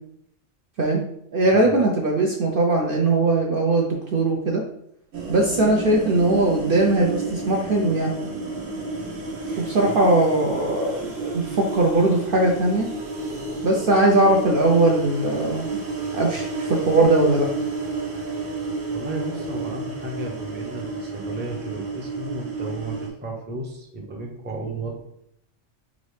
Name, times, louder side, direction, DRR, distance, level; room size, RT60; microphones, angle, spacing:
voice 1, 1.3-4.6 5.3-8.1 9.6-12.9 13.6-15.8 16.1-17.5, right 2 dB, 55° right, -1 dB, 0.7 m, -20 dB
sound 1, 5.1-23.1, right 3 dB, 85° right, 1.4 m, -31 dB
voice 2, 9.5-10.0 18.3-18.5 18.9-25.0, right 2 dB, 10° right, -1 dB, 0.6 m, -34 dB
4.9 x 2.6 x 3.3 m, 0.73 s
omnidirectional pair, 1.3 m